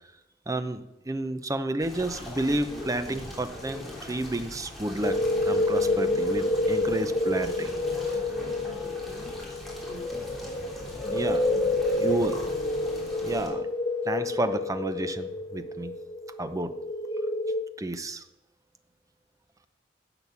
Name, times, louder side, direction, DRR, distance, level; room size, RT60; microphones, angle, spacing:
voice 1, 0.5-7.8 11.1-11.5 12.0-12.5 13.2-13.7 14.0-15.9 16.4-16.7 17.8-18.2, right 1 dB, 20° right, 10 dB, 0.7 m, -31 dB
sound 1, 1.8-13.5, left 1 dB, ahead, 3.1 m, -40 dB
sound 2, 5.0-17.6, left 2 dB, 25° left, 1.1 m, -28 dB
11.0 x 7.8 x 7.1 m, 0.88 s
head